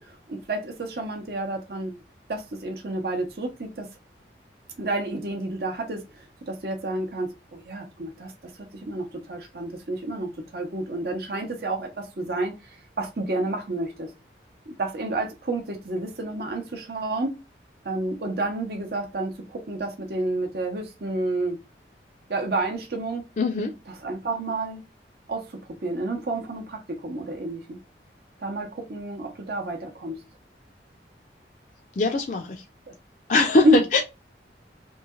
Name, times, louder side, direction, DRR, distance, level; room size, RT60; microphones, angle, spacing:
voice 1, 0.0-2.0 2.3-3.9 4.8-8.3 8.7-14.1 14.7-17.3 17.8-21.6 22.3-23.2 23.9-24.8 25.3-27.8 28.4-30.2 32.9-33.0 33.6-33.8, right 2 dB, 60° right, 0.7 m, -29 dB
voice 2, 23.4-23.7 32.0-32.6 33.3-34.0, left 3 dB, 45° left, 0.4 m, -21 dB
3.1 x 2.7 x 2.3 m
head